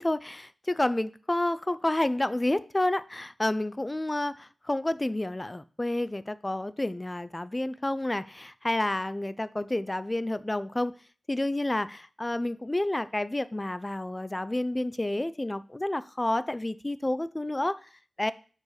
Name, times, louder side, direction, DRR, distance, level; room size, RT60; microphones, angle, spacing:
voice 1, 0.0-11.0 11.3-17.9 18.2-18.3, left 1 dB, 20° left, 15 dB, 0.3 m, -29 dB
6.4 x 4.8 x 4.0 m, 0.39 s
wide cardioid pair, 115°, 0 cm